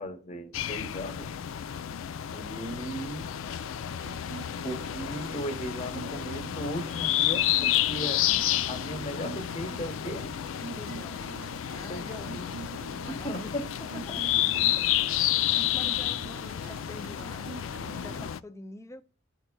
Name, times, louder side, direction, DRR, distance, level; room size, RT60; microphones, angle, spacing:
voice 1, 0.0-1.4 2.3-3.3 4.6-8.2 8.7-10.3 11.9-12.3 13.2-13.6, equal, 30° left, 1.1 m, -36 dB
sound 1, 0.5-18.4, left 12 dB, 80° left, 0.4 m, -30 dB
sound 2, 3.8-18.3, right 5 dB, 70° right, 0.5 m, -46 dB
voice 2, 10.7-11.3 11.7-12.6 13.0-14.2 15.3-17.6 18.0-19.0, left 2 dB, 15° left, 0.4 m, -46 dB
12.0 x 4.4 x 2.3 m
head